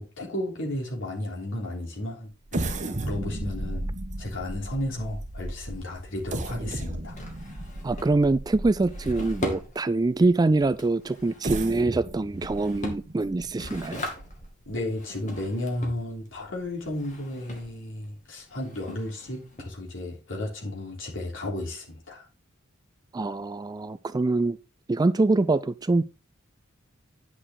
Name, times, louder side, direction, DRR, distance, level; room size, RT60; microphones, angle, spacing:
voice 1, 0.0-2.8 3.0-3.9 4.2-7.2 14.7-22.3, left 1 dB, 65° left, 3.5 m, -33 dB
sound 1, 2.5-9.6 10.2-10.3 11.2-14.7 15.2-15.3 15.7-15.9, right 1 dB, 35° right, 1.1 m, -35 dB
Drawer open or close, 5.0-20.2, left 1 dB, 35° left, 2.3 m, -41 dB
voice 2, 7.8-14.0 23.1-24.6 24.9-26.0, right 2 dB, 20° right, 0.3 m, -24 dB
10.0 x 6.3 x 3.8 m
head